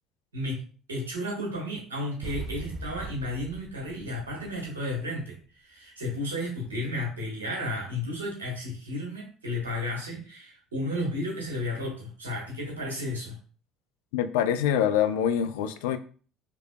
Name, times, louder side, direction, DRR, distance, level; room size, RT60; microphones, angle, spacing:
voice 1, 0.3-5.4 5.6-13.3, left 1 dB, 85° right, 1.4 m, -33 dB
sound 1, 2.2-5.2, right 3 dB, 40° right, 0.6 m, -40 dB
voice 2, 14.1-16.0, left 9 dB, 70° left, 0.4 m, -25 dB
4.7 x 3.2 x 2.3 m
figure-of-eight pair, 60°, 0 cm